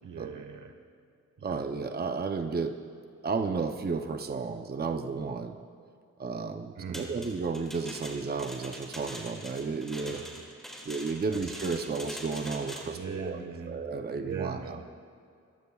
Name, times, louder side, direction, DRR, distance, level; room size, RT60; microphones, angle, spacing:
voice 1, 0.0-0.7 1.4-1.6 6.8-7.3 10.1-10.4 11.3-11.4 11.8-12.0 12.8-13.8 14.1-14.8, right 6 dB, 85° right, 6 dB, 1.4 m, -40 dB
voice 2, 1.4-2.8 3.2-5.5 6.2-10.2 10.9-14.8, right 4 dB, 30° right, 6 dB, 0.7 m, -33 dB
sound 1, 6.9-13.0, equal, ahead, 2.4 m, -43 dB
24.5 x 15.0 x 2.4 m, 2.3 s
wide cardioid pair, 125°, 30 cm